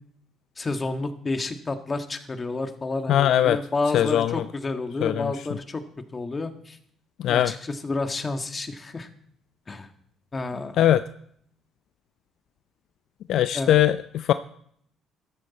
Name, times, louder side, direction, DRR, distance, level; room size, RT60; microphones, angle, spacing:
voice 1, 0.6-5.8 6.1-6.8 7.3-9.1 9.7-9.9 10.3-10.8 13.5-13.8, left 3 dB, 30° left, 6 dB, 1.7 m, -30 dB
voice 2, 3.1-3.6 3.9-4.4 5.0-5.3 7.2-7.5 10.8-11.0 13.3-14.3, left 11 dB, 70° left, 12 dB, 0.4 m, -20 dB
14.0 x 12.5 x 4.2 m, 0.67 s
supercardioid pair, 65°, 0 cm